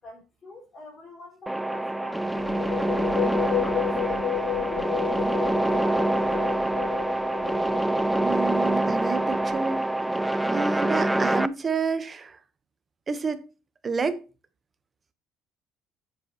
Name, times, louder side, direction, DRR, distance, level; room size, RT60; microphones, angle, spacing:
voice 1, 0.0-3.0 3.6-5.1 5.3-6.6, left 1 dB, 30° left, 4.6 m, -46 dB
sound 1, 1.5-11.5, right 1 dB, 5° right, 0.4 m, -25 dB
sound 2, 2.2-9.9, left 15 dB, 70° left, 0.4 m, -33 dB
voice 2, 8.2-9.9 10.5-12.4 13.1-13.5 13.8-14.2, right 5 dB, 20° right, 0.9 m, -29 dB
10.0 x 8.0 x 2.9 m
cardioid pair, 150°, 0 cm